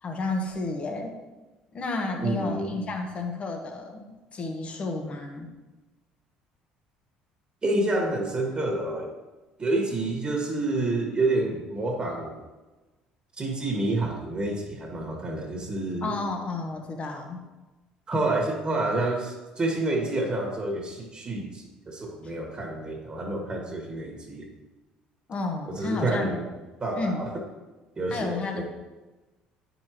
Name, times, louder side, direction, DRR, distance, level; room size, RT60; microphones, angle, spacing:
voice 1, 0.0-1.2 1.7-5.5 16.0-17.4 25.3-26.4 26.9-27.4 28.1-28.6, left 3 dB, 40° left, 3 dB, 1.2 m, -31 dB
voice 2, 2.2-2.8 7.6-9.1 9.6-12.4 13.4-16.1 18.1-24.5 25.7-26.5 26.8-27.3 28.0-28.6, right 2 dB, 30° right, 0 dB, 1.9 m, -28 dB
9.3 x 5.4 x 3.1 m, 1.2 s
supercardioid pair, 75°, 3 cm